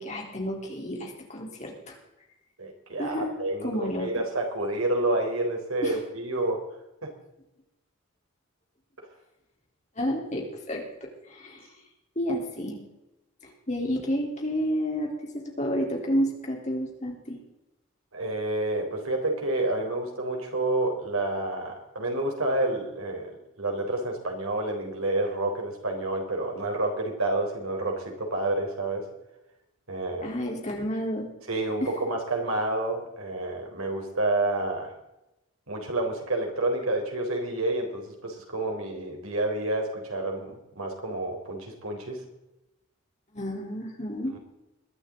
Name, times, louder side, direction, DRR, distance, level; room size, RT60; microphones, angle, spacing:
voice 1, 0.0-2.0 3.0-3.3 3.6-4.1 5.8-6.0 10.0-11.7 12.2-12.8 13.4-17.4 30.2-31.3 31.8-31.9 43.3-44.3, equal, 35° left, 0 dB, 3.6 m, -30 dB
voice 2, 2.6-6.6 7.0-7.1 18.1-29.1 29.9-30.3 31.5-34.9 35.7-42.2, right 2 dB, 85° right, 2 dB, 4.0 m, -29 dB
21.5 x 12.0 x 3.9 m, 0.92 s
head